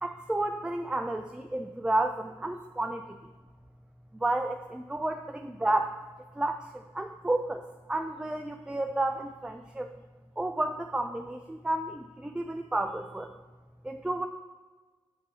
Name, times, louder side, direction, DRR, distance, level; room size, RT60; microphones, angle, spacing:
voice 1, 0.0-3.2 4.1-5.9 6.4-7.6 7.9-9.9 10.4-13.3 13.8-14.3, right 2 dB, 10° right, 6 dB, 0.4 m, -31 dB
7.7 x 2.7 x 5.5 m, 1.4 s
supercardioid pair, 40°, 11 cm